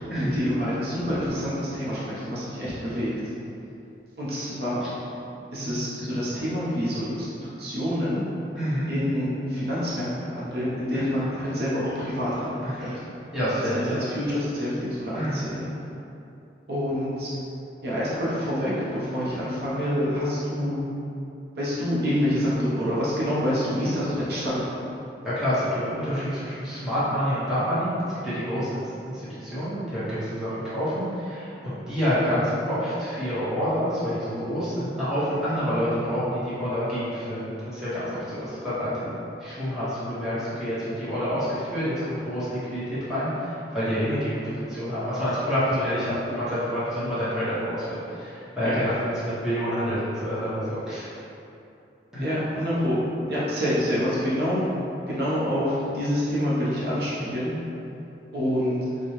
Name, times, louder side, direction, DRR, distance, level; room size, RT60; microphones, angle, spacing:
voice 1, 0.2-3.1 4.2-4.9 5.5-7.3 7.6-8.2 8.9-12.9 13.5-15.7 16.7-17.3 17.8-20.8 21.6-24.6 44.0-44.2 48.6-48.7 52.2-54.7 55.1-57.5 58.3-58.8, equal, 60° right, -8 dB, 0.8 m, -27 dB
voice 2, 8.5-8.9 10.9-11.1 12.6-12.9 13.3-14.0 15.1-15.4 25.2-27.9 28.2-28.8 29.1-39.1 39.4-43.3 43.7-51.0 52.1-52.3, equal, 5° right, -14 dB, 1.1 m, -28 dB
4.3 x 2.3 x 3.1 m, 2.7 s
head